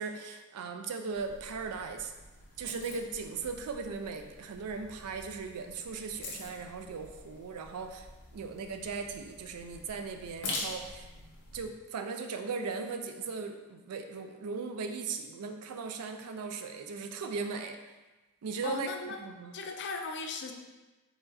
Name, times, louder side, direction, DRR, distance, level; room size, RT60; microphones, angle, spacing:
voice 1, 0.0-2.1 2.6-8.1 8.3-11.1 11.5-17.8 18.4-18.9 19.2-19.5, right 4 dB, 75° right, 5 dB, 0.4 m, -38 dB
sound 1, 1.1-11.6, left 2 dB, 85° left, 1.0 m, -45 dB
voice 2, 18.6-19.2 19.5-20.5, left 4 dB, 50° left, 4 dB, 0.5 m, -37 dB
4.7 x 4.1 x 2.6 m, 1.1 s
head